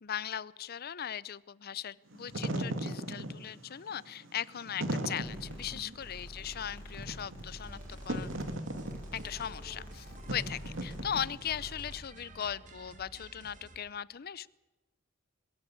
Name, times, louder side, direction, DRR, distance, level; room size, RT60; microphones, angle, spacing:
voice 1, 0.0-8.3 9.1-10.1 10.3-14.5, left 9 dB, 50° left, 20 dB, 0.6 m, -38 dB
Wind / Fire, 2.1-11.6, right 1 dB, 70° right, 2.2 m, -38 dB
sound 1, 5.2-12.0, equal, 10° left, 5.6 m, -47 dB
sound 2, 7.6-13.8, right 2 dB, 40° right, 2.2 m, -53 dB
22.0 x 14.0 x 8.6 m, 1.1 s
head